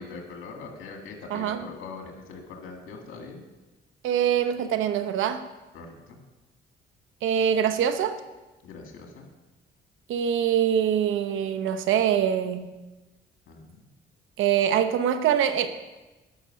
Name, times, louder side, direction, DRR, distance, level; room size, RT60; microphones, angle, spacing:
voice 1, 0.0-3.4 5.7-6.2 8.6-9.3 13.5-13.9, left 4 dB, 85° left, 2 dB, 2.1 m, -42 dB
voice 2, 4.0-5.4 7.2-8.2 10.1-12.7 14.4-15.7, right 9 dB, 85° right, 10 dB, 0.9 m, -24 dB
12.5 x 6.1 x 5.7 m, 1.1 s
cardioid pair, 90°, 20 cm